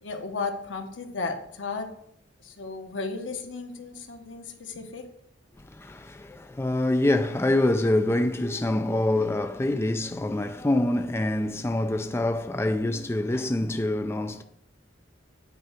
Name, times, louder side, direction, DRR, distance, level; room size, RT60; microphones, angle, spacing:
voice 1, 0.0-1.9 2.4-5.1, left 4 dB, 80° left, 1.2 m, -34 dB
voice 2, 5.6-14.4, left 1 dB, 15° left, 0.4 m, -25 dB
9.4 x 4.7 x 5.7 m
head